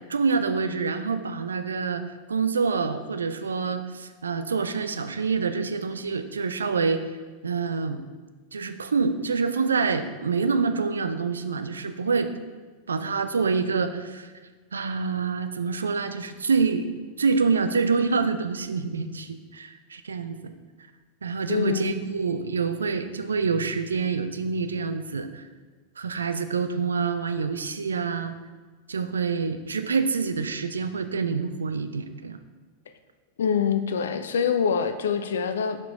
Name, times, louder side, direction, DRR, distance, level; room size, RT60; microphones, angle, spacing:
voice 1, 0.1-7.0 7.4-8.0 8.5-12.3 12.9-14.3 14.7-16.9 17.2-20.5 21.2-25.5 26.0-28.3 28.9-32.4, right 5 dB, 70° right, 9 dB, 0.4 m, -26 dB
voice 2, 21.5-22.0 33.4-35.8, left 6 dB, 65° left, 9 dB, 0.4 m, -25 dB
5.9 x 4.4 x 4.1 m, 1.4 s
figure-of-eight pair, 90°, 0 cm